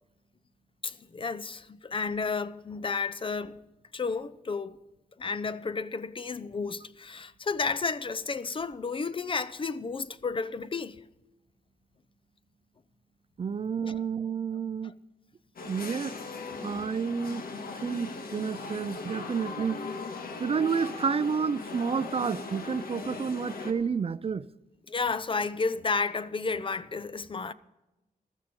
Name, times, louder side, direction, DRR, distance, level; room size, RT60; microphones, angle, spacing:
voice 1, 0.8-3.6 3.9-4.8 5.2-11.0 13.9-14.0 24.9-27.5, left 4 dB, 35° left, 0.6 m, -32 dB
voice 2, 13.4-14.9 15.6-16.2 16.6-17.4 17.8-19.8 20.4-24.5, right 6 dB, 40° right, 0.4 m, -30 dB
sound 1, 15.6-23.7, left 4 dB, 90° left, 1.7 m, -39 dB
15.5 x 13.0 x 5.3 m
wide cardioid pair, 150°, 15 cm